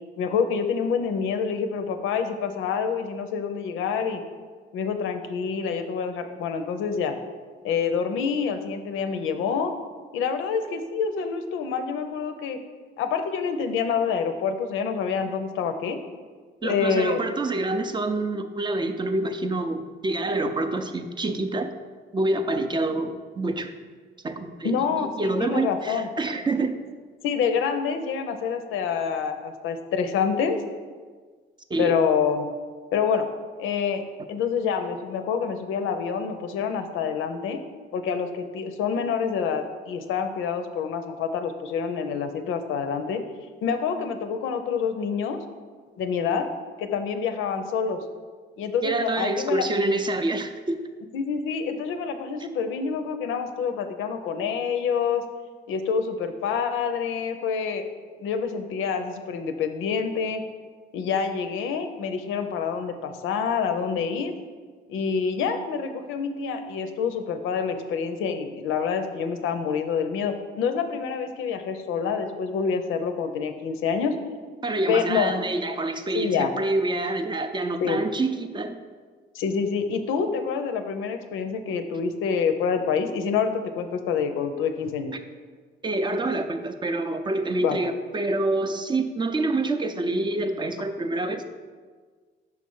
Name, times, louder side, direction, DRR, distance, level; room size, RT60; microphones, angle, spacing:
voice 1, 0.2-4.2 4.7-7.1 7.6-9.7 10.1-12.6 13.0-16.0 16.6-17.2 24.6-26.1 27.2-30.6 31.8-32.5 32.9-33.3 33.6-34.0 34.3-37.6 37.9-43.2 43.6-45.4 46.0-46.5 46.8-48.0 48.6-49.6 51.1-55.2 55.7-57.9 58.2-60.4 60.9-64.3 64.9-74.2 74.9-75.3 76.1-76.5 77.8-78.0 79.3-85.1 87.6-87.8, left 6 dB, 90° left, 7 dB, 0.5 m, -27 dB
voice 2, 16.6-21.7 22.1-23.7 24.2-24.7 25.2-26.7 31.7-32.0 48.8-50.8 74.6-78.8 85.8-91.4, right 2 dB, 25° right, 8 dB, 0.4 m, -27 dB
5.6 x 3.2 x 5.4 m, 1.5 s
cardioid pair, 90°, 20 cm